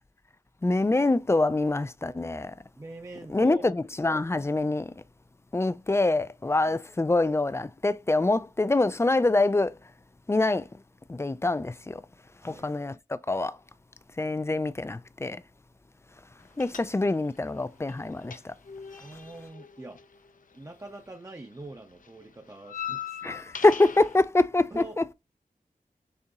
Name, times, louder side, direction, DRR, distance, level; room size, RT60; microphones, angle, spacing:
voice 1, 0.6-2.5 3.3-4.9 5.5-9.7 10.3-10.7 11.1-12.0 12.4-13.6 14.2-15.4 16.6-18.5 23.2-25.1, left 2 dB, 20° left, 0.3 m, -25 dB
voice 2, 2.8-3.7 6.6-6.8 12.4-12.7 19.0-20.0 20.5-23.5 24.7-25.0, right 2 dB, 25° right, 0.7 m, -44 dB
sound 1, 16.6-17.4 17.6-21.0 21.3-24.2, left 8 dB, 65° left, 0.6 m, -40 dB
6.4 x 2.9 x 2.4 m
cardioid pair, 55°, 15 cm